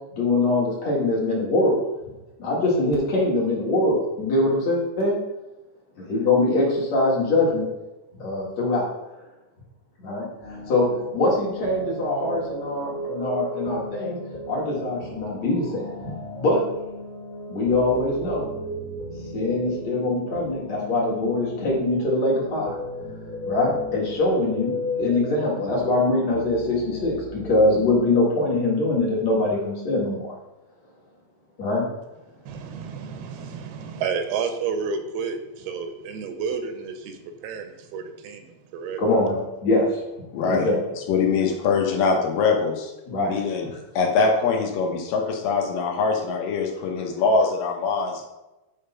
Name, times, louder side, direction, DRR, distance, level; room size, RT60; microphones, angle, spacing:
voice 1, 0.2-1.8 2.4-5.2 6.0-7.7 8.2-8.8 10.0-10.9 11.1-14.2 14.5-16.6 17.5-18.5 19.3-22.7 23.5-30.3 31.6-31.8 39.0-40.0 40.4-40.8 43.1-43.8, left 2 dB, 55° left, -4 dB, 2.4 m, -23 dB
sound 1, 10.4-29.0, left 1 dB, 35° left, 1.7 m, -35 dB
voice 2, 32.5-37.2 37.4-39.0 40.4-40.6, right 6 dB, 85° right, 7 dB, 2.7 m, -31 dB
voice 3, 40.3-40.7 41.1-42.9 43.3-43.7 44.0-48.3, left 4 dB, 75° left, 1 dB, 2.3 m, -23 dB
8.9 x 3.6 x 5.5 m, 1.0 s
omnidirectional pair, 4.4 m